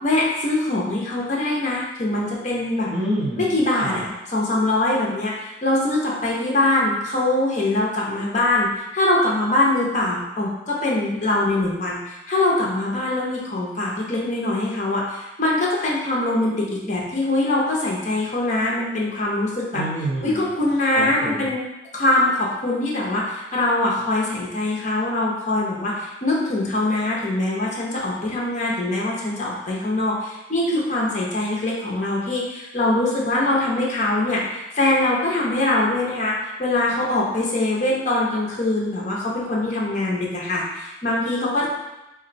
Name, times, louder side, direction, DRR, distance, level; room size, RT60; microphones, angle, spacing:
voice 1, 0.0-2.9 3.4-19.8 20.2-21.6 21.9-41.7, left 2 dB, 40° left, -4 dB, 0.6 m, -23 dB
voice 2, 2.9-3.5 3.8-4.0 19.7-20.4 20.9-21.5 41.6-41.7, right 1 dB, 5° left, -14 dB, 0.7 m, -27 dB
2.5 x 2.1 x 3.9 m, 0.97 s
head